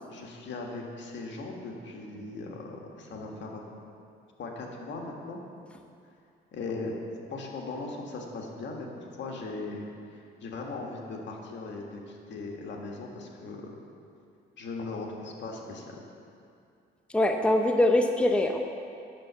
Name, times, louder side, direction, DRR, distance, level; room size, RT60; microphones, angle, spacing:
voice 1, 0.1-3.7 4.4-5.4 6.5-6.9 7.3-13.7 14.6-15.9, left 3 dB, 65° left, 0 dB, 1.7 m, -38 dB
voice 2, 17.1-18.6, left 1 dB, 5° left, 4 dB, 0.7 m, -23 dB
9.0 x 7.1 x 6.9 m, 2.5 s
cardioid pair, 90°, 20 cm